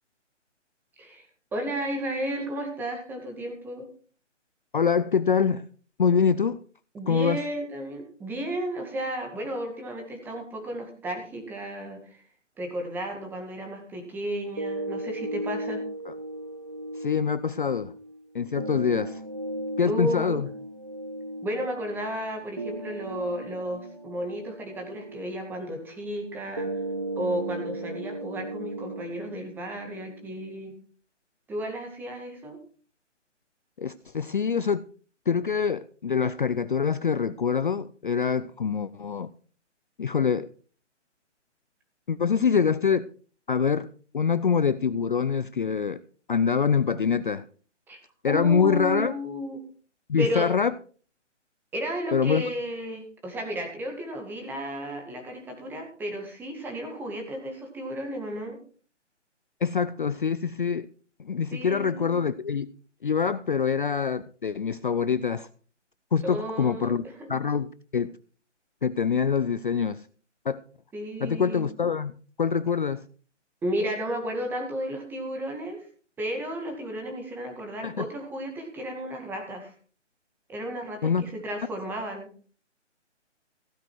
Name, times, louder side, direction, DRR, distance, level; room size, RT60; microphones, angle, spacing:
voice 1, 1.0-3.9 6.9-12.2 12.6-15.8 19.9-20.4 21.4-26.8 27.2-30.7 31.5-32.6 47.9-48.0 48.3-49.6 50.2-50.5 51.7-58.6 61.5-62.2 66.2-67.1 70.9-71.6 73.6-75.8 76.2-79.7 80.5-82.3, right 1 dB, 5° right, 2.1 m, -33 dB
voice 2, 4.7-5.7 6.0-6.6 7.1-7.4 16.1-16.2 16.9-17.9 18.3-19.2 19.8-20.5 33.8-34.8 35.3-39.3 40.0-40.5 42.1-43.1 43.5-43.9 44.1-46.0 46.3-47.4 48.2-49.2 50.1-50.7 52.1-52.4 59.6-60.9 61.2-62.7 63.0-65.5 66.1-67.0 67.3-68.2 68.8-70.1 70.5-70.6 71.2-73.0 77.8-78.1 81.0-81.2, left 6 dB, 45° left, 0.5 m, -25 dB
sound 1, 14.6-30.6, right 1 dB, 25° right, 0.5 m, -36 dB
16.0 x 9.1 x 4.6 m
figure-of-eight pair, 155°, 37 cm